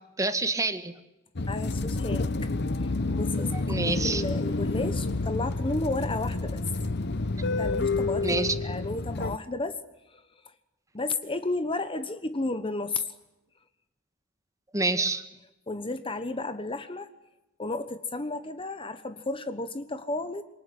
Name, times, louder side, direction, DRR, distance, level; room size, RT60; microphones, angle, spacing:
voice 1, 0.2-0.9 3.4-4.2 8.2-8.6 14.7-15.2, right 3 dB, 15° right, 9 dB, 1.8 m, -27 dB
sound 1, 1.4-9.4, left 3 dB, 55° left, 1.0 m, -29 dB
voice 2, 1.5-2.5 2.8-3.5 3.8-6.6 7.5-9.8 10.1-10.2 10.9-13.1 15.7-17.1 17.6-20.4, left 2 dB, 25° left, 11 dB, 1.2 m, -33 dB
26.0 x 24.0 x 9.7 m, 0.98 s
head